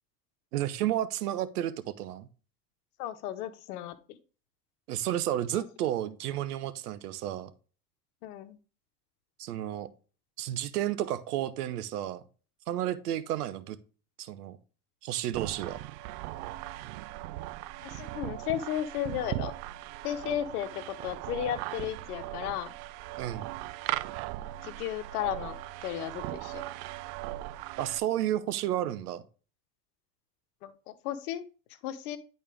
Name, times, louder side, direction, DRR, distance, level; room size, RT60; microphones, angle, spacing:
voice 1, 0.5-2.3 4.9-7.5 9.4-9.9 10.4-12.2 12.7-13.8 14.2-14.6 15.0-15.8 23.2-23.5 27.8-29.2, right 12 dB, 85° right, 14 dB, 0.9 m, -32 dB
voice 2, 3.0-4.2 5.5-5.6 8.2-8.6 17.8-19.5 20.0-22.7 24.6-25.6 25.8-26.6 30.6-31.4 31.8-32.2, left 11 dB, 75° left, 11 dB, 1.0 m, -34 dB
sound 1, 15.3-28.0, right 16 dB, 55° right, 0.5 m, -38 dB
10.0 x 4.4 x 3.4 m, 0.36 s
hypercardioid pair, 80°, 45 cm